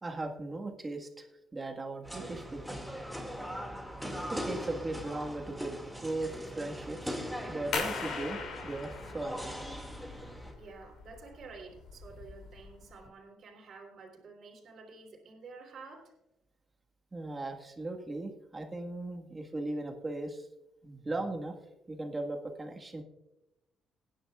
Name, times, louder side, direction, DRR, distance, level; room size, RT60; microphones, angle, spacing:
voice 1, 0.0-1.3 1.5-2.8 4.3-9.4 17.1-20.5 20.8-21.5 21.9-23.0, right 2 dB, 25° right, 3 dB, 1.6 m, -38 dB
sound 1, 2.0-10.5, equal, ahead, 2.2 m, -40 dB
sound 2, 7.7-13.1, left 5 dB, 70° left, 2.8 m, -40 dB
voice 2, 10.5-16.1, right 4 dB, 60° right, 0 dB, 3.2 m, -50 dB
19.5 x 10.0 x 2.4 m, 0.97 s
cardioid pair, 90°, 0 cm